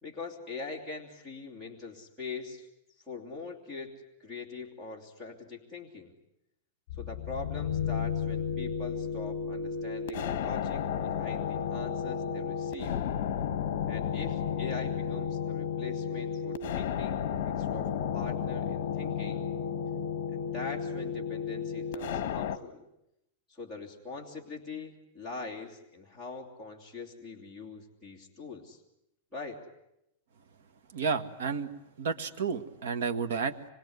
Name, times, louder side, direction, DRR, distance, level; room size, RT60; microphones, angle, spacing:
voice 1, 0.0-2.7 3.1-3.9 4.2-6.1 7.0-13.0 13.9-19.5 20.3-22.8 23.5-28.8 29.3-29.7, left 4 dB, 5° right, -1 dB, 2.9 m, -42 dB
sound 1, 6.9-22.6, left 8 dB, 50° left, 1.3 m, -33 dB
voice 2, 30.9-31.7 32.0-33.6, right 5 dB, 75° right, 8 dB, 1.8 m, -31 dB
26.0 x 22.5 x 9.6 m, 0.82 s
supercardioid pair, 175°, 0 cm